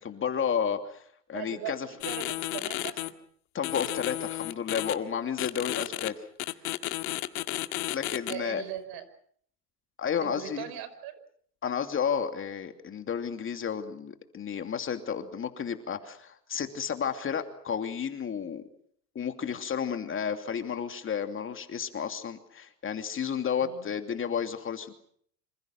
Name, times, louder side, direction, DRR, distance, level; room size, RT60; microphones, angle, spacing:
voice 1, 0.0-1.0 1.3-1.9 3.5-6.1 7.9-8.6 10.0-10.7 11.6-18.6 19.1-24.9, left 7 dB, 25° left, 6 dB, 2.7 m, -32 dB
voice 2, 1.3-3.1 8.3-9.1 10.2-11.2 23.6-23.8, right 11 dB, 50° right, 13 dB, 5.4 m, -39 dB
sound 1, 2.0-3.1 3.6-4.9 5.4-6.1 6.4-8.3, left 17 dB, 65° left, 2.0 m, -32 dB
27.0 x 27.0 x 6.0 m, 0.63 s
hypercardioid pair, 100°, 47 cm